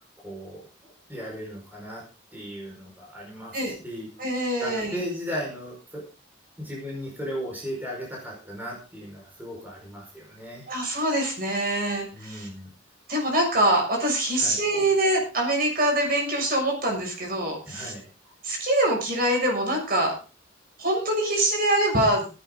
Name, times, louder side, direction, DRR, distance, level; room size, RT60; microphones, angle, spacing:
voice 1, 0.2-2.0 2.3-4.1 4.6-6.0 6.6-10.7 12.1-12.7 14.4-14.6 17.7-18.0, equal, 10° right, -3 dB, 5.1 m, -36 dB
voice 2, 4.2-5.0 10.7-12.5 13.1-17.9 18.4-20.1 20.8-22.2, right 1 dB, 45° right, 1 dB, 6.7 m, -24 dB
18.0 x 10.5 x 3.9 m, 0.35 s
head